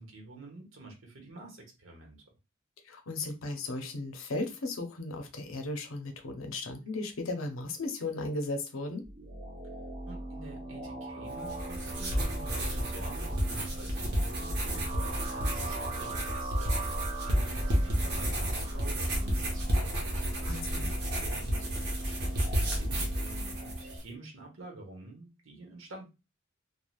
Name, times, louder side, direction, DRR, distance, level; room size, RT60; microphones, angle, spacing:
voice 1, 0.0-2.2 10.1-26.1, right 2 dB, 80° right, 1.1 m, -48 dB
voice 2, 2.8-9.1 20.4-20.9, left 2 dB, 80° left, 0.7 m, -36 dB
sound 1, 9.0-24.0, right 2 dB, 35° right, 1.2 m, -41 dB
sound 2, 11.3-24.0, equal, 55° right, 0.9 m, -31 dB
3.2 x 2.3 x 2.3 m
head